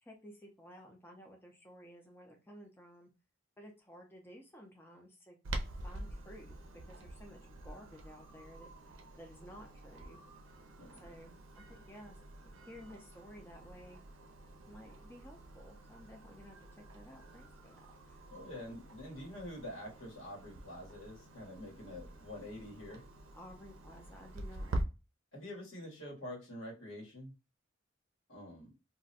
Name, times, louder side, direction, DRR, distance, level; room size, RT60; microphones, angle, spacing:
voice 1, 0.0-3.1 3.6-5.4 5.8-6.6 6.9-8.7 9.2-10.2 11.0-12.2 12.7-14.0 14.7-17.8 18.1-18.2 23.3-24.8, equal, 10° left, 0 dB, 0.5 m, -54 dB
Clock, 5.4-24.8, right 1 dB, 85° right, 0.5 m, -46 dB
voice 2, 18.3-23.0 25.3-27.3 28.3-28.7, left 1 dB, 80° left, -2 dB, 1.3 m, -46 dB
2.5 x 2.1 x 4.0 m, 0.29 s
head